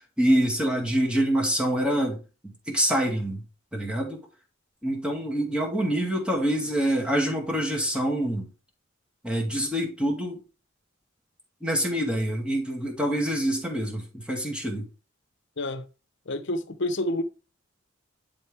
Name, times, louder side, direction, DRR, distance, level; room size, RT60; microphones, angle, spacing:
voice 1, 0.2-3.4 3.7-4.2 4.8-8.5 9.2-10.4 11.6-14.9, equal, 5° right, 2.2 m, -26 dB
voice 2, 15.6-15.9 16.3-17.2, left 1 dB, 65° left, 0.8 m, -28 dB
11.0 x 3.8 x 3.5 m
head